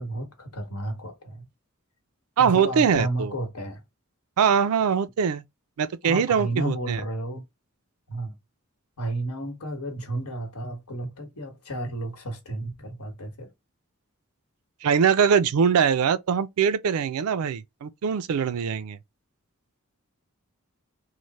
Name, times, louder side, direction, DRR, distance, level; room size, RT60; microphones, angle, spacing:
voice 1, 0.0-1.4 2.4-3.8 6.0-7.4 8.1-8.3 9.0-13.5, right 1 dB, 85° left, 1.2 m, -32 dB
voice 2, 2.4-3.3 4.4-5.4 5.8-7.0 14.8-19.0, right 7 dB, 80° right, 0.4 m, -22 dB
3.2 x 2.1 x 4.0 m
head